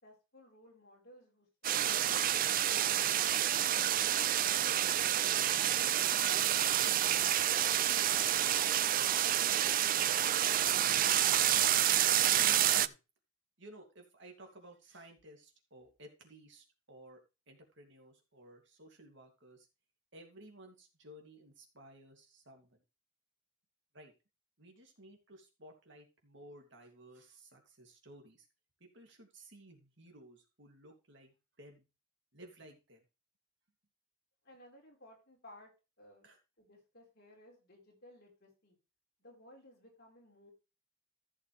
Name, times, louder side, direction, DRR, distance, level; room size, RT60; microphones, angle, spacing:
voice 1, 0.0-3.1 3.7-6.4 7.0-9.7 10.6-11.5 34.4-35.7 36.0-36.3 36.6-38.8 39.2-40.5, left 1 dB, 50° left, -1 dB, 4.7 m, -59 dB
sound 1, 1.6-12.9, right 11 dB, 45° right, 0.4 m, -29 dB
voice 2, 13.6-19.7 20.1-22.8 23.9-24.1 24.6-28.5 28.8-31.8 32.3-33.0 36.2-36.4, right 1 dB, 60° right, 3 dB, 2.8 m, -56 dB
14.5 x 6.6 x 3.4 m, 0.29 s
head